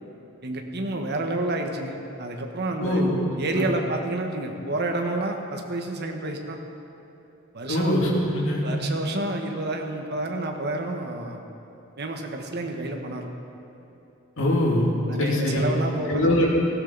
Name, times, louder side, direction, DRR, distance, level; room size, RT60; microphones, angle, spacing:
voice 1, 0.4-3.0 3.4-6.6 7.5-7.9 8.6-11.4 12.0-13.3 15.1-16.2, right 2 dB, 55° right, 3 dB, 1.4 m, -29 dB
voice 2, 2.8-3.2 3.4-3.7 7.7-8.6 14.4-14.9 15.2-15.6 16.1-16.5, left 1 dB, 70° left, -3 dB, 2.8 m, -23 dB
17.5 x 15.0 x 4.1 m, 3.0 s
head